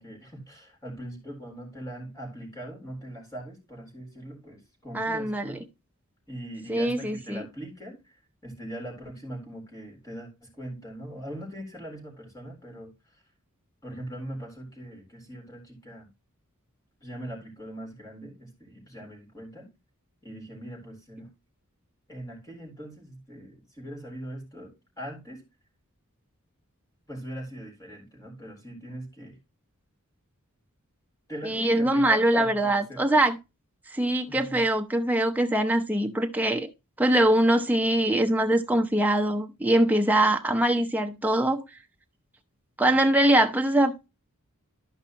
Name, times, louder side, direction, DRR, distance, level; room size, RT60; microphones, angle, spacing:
voice 1, 0.0-5.7 6.3-13.2 13.8-16.1 17.0-19.7 20.2-21.3 22.1-25.4 27.1-29.4 31.3-33.2 34.3-34.6, right 1 dB, 15° left, 3.7 m, -41 dB
voice 2, 4.9-5.6 6.7-7.4 31.4-33.4 33.9-36.7 37.0-41.6 42.8-43.9, right 1 dB, 10° right, 0.8 m, -23 dB
13.0 x 5.2 x 2.9 m
head